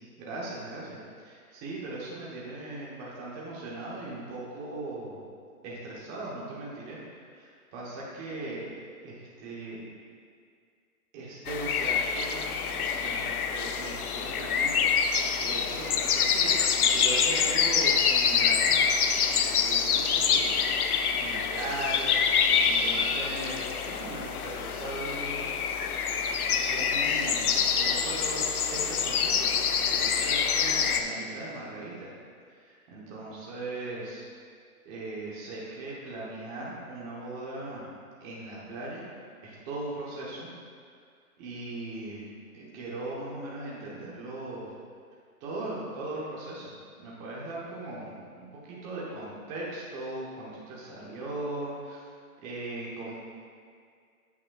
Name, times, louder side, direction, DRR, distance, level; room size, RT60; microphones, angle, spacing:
voice 1, 0.2-5.2 5.6-7.0 7.3-8.7 9.0-9.9 11.1-19.0 19.3-20.6 20.8-25.5 26.6-32.1 32.5-34.2 34.8-37.9 38.2-39.0 39.4-40.5 41.4-42.3 42.5-44.7 45.4-46.7 47.0-52.0 52.4-53.1, right 2 dB, 15° right, -6 dB, 0.9 m, -39 dB
sound 1, 11.5-31.0, left 6 dB, 75° left, 0.7 m, -26 dB
9.4 x 8.1 x 2.3 m, 2.2 s
hypercardioid pair, 160°, 45 cm